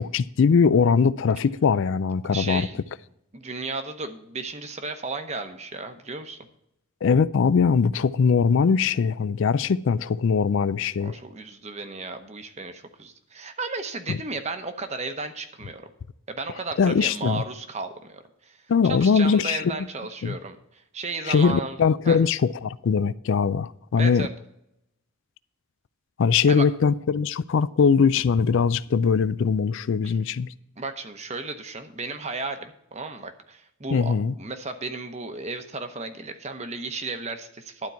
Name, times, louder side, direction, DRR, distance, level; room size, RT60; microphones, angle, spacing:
voice 1, 0.0-2.7 7.0-11.1 14.1-14.2 16.8-17.4 18.7-19.7 20.2-20.3 21.3-24.3 26.2-30.5 33.9-34.3, left 5 dB, 55° left, 0.3 m, -21 dB
voice 2, 2.3-2.8 3.3-6.4 11.0-15.8 16.3-18.6 18.8-22.2 24.0-24.3 26.5-26.7 30.0-30.1 30.8-37.9, right 3 dB, 30° right, 0.8 m, -34 dB
12.0 x 4.5 x 8.1 m
head